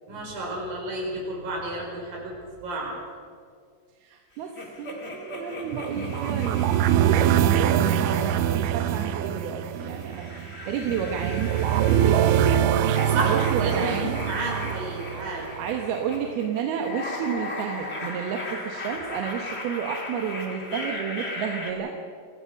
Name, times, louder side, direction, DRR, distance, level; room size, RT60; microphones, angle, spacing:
voice 1, 0.1-2.4 2.6-3.0 13.1-15.5, right 2 dB, 50° right, -2 dB, 6.9 m, -31 dB
voice 2, 4.0-12.9 13.2-14.2 15.6-21.9, right 7 dB, 70° right, 2 dB, 2.9 m, -31 dB
sound 1, 4.5-9.3 9.8-21.7, left 2 dB, 45° left, 0.8 m, -38 dB
sound 2, 5.7-15.8, right 10 dB, 85° right, 3.1 m, -24 dB
26.0 x 16.5 x 6.5 m, 2.1 s
omnidirectional pair, 5.2 m